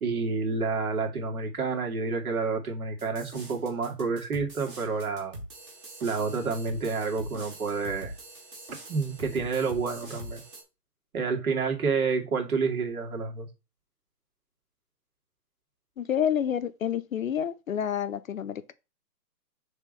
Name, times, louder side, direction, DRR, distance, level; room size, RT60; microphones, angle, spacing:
voice 1, 0.0-5.3 6.0-8.1 8.9-10.4 11.1-13.5, right 4 dB, 60° right, 2.4 m, -29 dB
sound 1, 3.0-10.6, right 1 dB, 10° right, 1.0 m, -43 dB
voice 2, 16.0-18.7, left 9 dB, 55° left, 0.7 m, -29 dB
6.3 x 3.7 x 5.4 m
hypercardioid pair, 160°, 48 cm